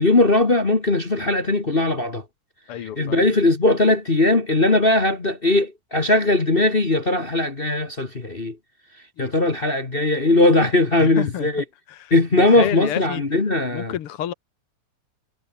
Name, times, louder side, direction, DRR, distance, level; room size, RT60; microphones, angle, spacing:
voice 1, 0.0-2.2 3.0-8.6 9.2-11.6 12.1-13.9, left 2 dB, 25° left, 1.2 m, -19 dB
voice 2, 2.7-3.2 9.2-9.3 11.0-11.5 11.9-13.2 13.7-14.3, left 11 dB, 60° left, 1.8 m, -30 dB
omnidirectional pair, 3.4 m